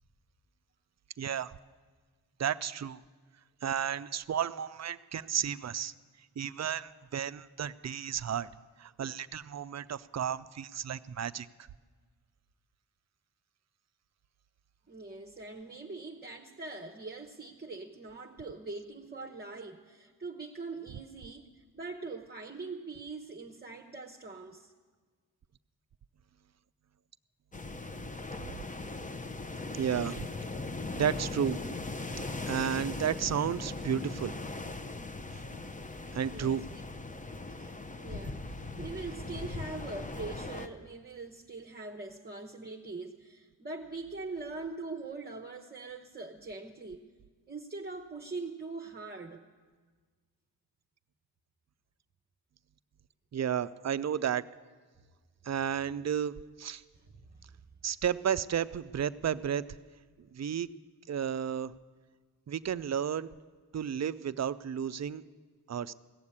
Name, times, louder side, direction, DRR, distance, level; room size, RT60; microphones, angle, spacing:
voice 1, 1.2-1.6 2.4-3.0 3.6-5.9 6.4-8.5 8.8-11.5 28.4-28.5 29.7-30.3 31.0-31.6 32.2-34.4 36.1-36.7 53.3-54.4 55.4-56.8 57.8-59.7 60.2-60.7 61.1-61.7 62.5-63.3 63.7-65.2 65.7-65.9, right 8 dB, 40° right, 15 dB, 0.5 m, -32 dB
voice 2, 14.9-24.7 36.3-36.6 37.5-47.1 47.5-49.5 57.3-57.4, right 3 dB, 25° right, 1 dB, 0.9 m, -42 dB
sound 1, 27.5-40.7, left 3 dB, 20° left, 0.7 m, -39 dB
16.0 x 7.2 x 9.6 m, 1.5 s
cardioid pair, 50°, 41 cm